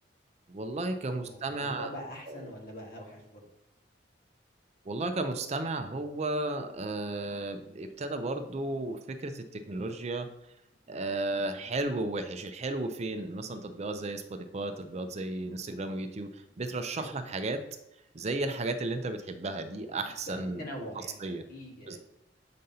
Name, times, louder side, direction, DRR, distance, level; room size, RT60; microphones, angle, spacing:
voice 1, 0.5-1.9 2.3-2.5 4.9-10.3 10.9-17.6 18.1-20.7 21.0-21.4 21.9-22.0, right 2 dB, 35° right, 7 dB, 0.5 m, -34 dB
voice 2, 1.0-3.4 13.4-13.7 20.2-22.0, equal, 50° left, -1 dB, 1.6 m, -43 dB
7.6 x 5.2 x 2.8 m, 0.81 s
head